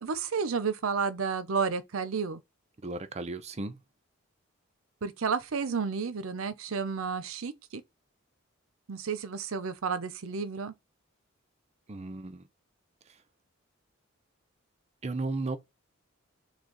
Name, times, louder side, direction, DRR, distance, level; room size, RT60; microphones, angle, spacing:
voice 1, 0.0-2.4 5.0-7.8 8.9-10.7, right 5 dB, 80° right, 0.6 m, -31 dB
voice 2, 2.8-3.8 11.9-12.5 13.1-13.2 15.0-15.6, right 3 dB, 30° right, 0.6 m, -35 dB
6.0 x 2.3 x 3.9 m
head